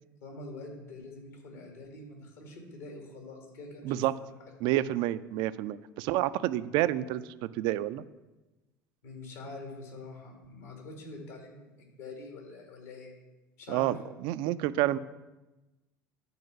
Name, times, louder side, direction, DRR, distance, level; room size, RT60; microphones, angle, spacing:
voice 1, 0.2-4.0 4.4-4.5 9.0-13.1 13.6-13.9, left 2 dB, 65° left, 1 dB, 2.2 m, -45 dB
voice 2, 4.6-7.2 7.6-8.0 13.7-14.0 14.2-15.0, right 14 dB, 50° right, 14 dB, 0.4 m, -28 dB
9.6 x 4.6 x 6.0 m, 1.1 s
figure-of-eight pair, 70°, 10 cm